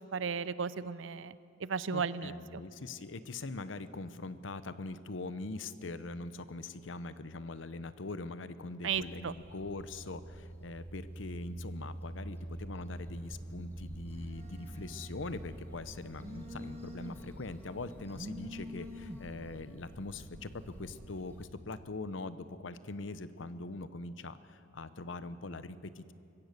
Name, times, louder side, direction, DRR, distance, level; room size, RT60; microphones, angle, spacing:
voice 1, 0.0-2.6 8.8-9.3, right 6 dB, 75° right, 17 dB, 0.6 m, -35 dB
voice 2, 1.9-26.1, left 3 dB, 75° left, 13 dB, 0.8 m, -42 dB
sound 1, 8.9-21.5, right 1 dB, 10° left, 1.9 m, -47 dB
sound 2, 10.7-14.9, left 1 dB, 10° right, 3.4 m, -66 dB
Telephone, 12.9-21.0, left 1 dB, 35° right, 1.0 m, -49 dB
24.5 x 15.5 x 6.7 m, 2.6 s
head